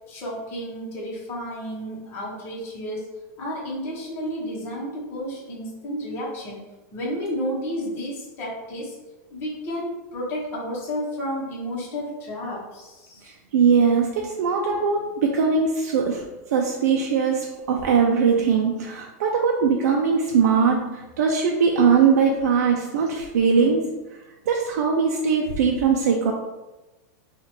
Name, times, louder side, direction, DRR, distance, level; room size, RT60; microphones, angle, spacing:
voice 1, 0.1-3.1 3.4-6.6 6.9-9.0 9.3-13.3, equal, 30° left, -6 dB, 1.0 m, -31 dB
voice 2, 13.2-24.2 24.5-26.3, right 6 dB, 85° right, 0 dB, 0.5 m, -21 dB
3.0 x 2.4 x 4.2 m, 1.1 s
supercardioid pair, 165°, 9 cm